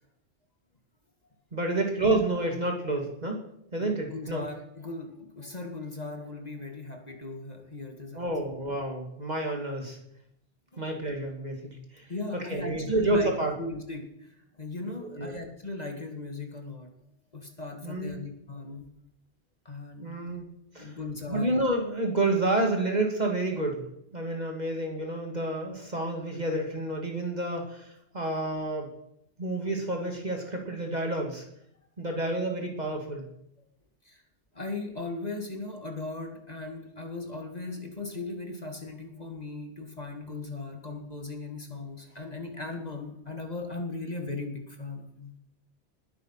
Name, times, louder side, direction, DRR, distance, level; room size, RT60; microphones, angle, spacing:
voice 1, 1.5-3.4 3.7-4.4 8.1-10.0 10.8-13.5 15.1-15.3 17.8-18.2 20.0-20.5 20.7-21.0 21.3-23.8 24.1-27.9 28.1-28.9 29.4-31.4 32.0-33.2, right 2 dB, 35° right, 1 dB, 2.8 m, -29 dB
voice 2, 3.8-8.3 10.7-10.9 12.1-13.3 13.6-16.9 17.3-18.9 19.7-20.1 20.8-21.5 34.1-34.2 34.5-45.3, left 3 dB, 35° left, 3 dB, 2.2 m, -38 dB
20.5 x 9.4 x 5.9 m, 0.76 s
omnidirectional pair, 1.2 m